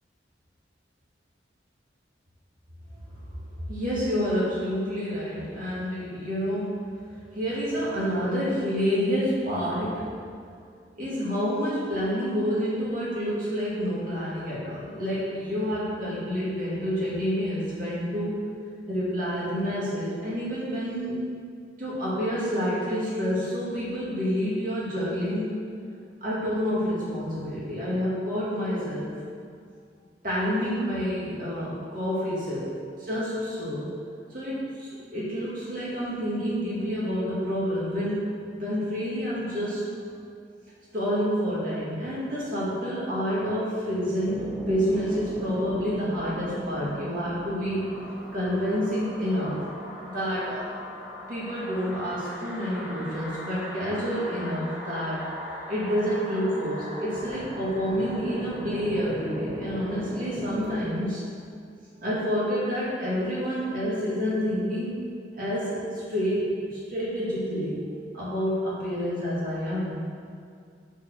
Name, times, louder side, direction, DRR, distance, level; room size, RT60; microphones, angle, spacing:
voice 1, 3.7-6.9 7.3-10.1 10.4-10.5 11.0-18.4 18.9-21.2 21.8-25.5 26.2-29.1 30.2-33.9 34.3-39.9 40.9-47.9 48.3-49.6 50.1-50.9 51.3-55.3 55.7-61.2 62.0-65.0 65.4-67.8 68.1-70.0, equal, 50° right, -8 dB, 2.2 m, -28 dB
sound 1, 44.2-60.9, equal, 10° right, 1.7 m, -38 dB
7.9 x 4.6 x 6.5 m, 2.2 s
head